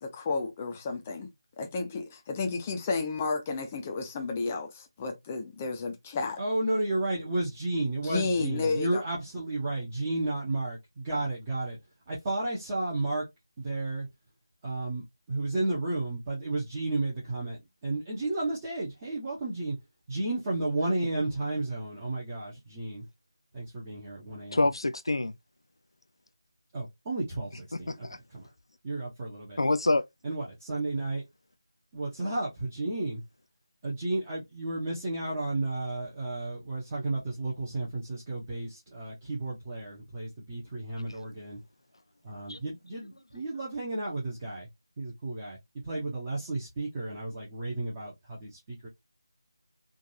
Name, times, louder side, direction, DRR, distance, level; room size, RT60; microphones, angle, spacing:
voice 1, 0.0-1.3 1.6-6.4 8.0-9.0, left 4 dB, 20° left, 0.7 m, -32 dB
voice 2, 6.4-11.8 12.1-13.2 13.6-14.1 14.6-17.6 17.8-19.8 20.1-23.0 23.5-24.7 26.7-28.4 28.8-29.6 30.2-31.2 31.9-33.2 33.8-41.6 42.2-44.7 45.0-45.6 45.8-48.9, right 2 dB, 20° right, 1.0 m, -32 dB
voice 3, 24.5-25.3 27.7-28.2 29.6-30.0 42.5-42.6, left 2 dB, 75° left, 0.3 m, -26 dB
3.8 x 2.6 x 2.8 m
figure-of-eight pair, 165°, 3 cm